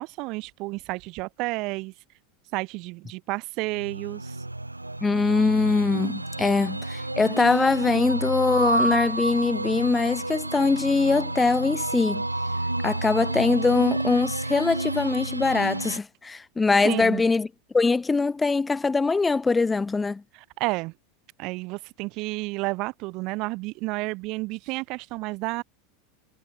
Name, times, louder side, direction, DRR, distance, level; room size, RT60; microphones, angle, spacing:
voice 1, 0.0-1.9 2.5-4.5 16.8-17.2 20.3-20.9 21.4-25.6, right 24 dB, 45° right, 1.9 m, -31 dB
sound 1, 3.7-16.0, right 2 dB, 85° right, 1.9 m, -30 dB
voice 2, 5.0-12.3 12.8-17.5 17.7-20.2, left 4 dB, 15° left, 0.8 m, -22 dB
figure-of-eight pair, 85°, 0 cm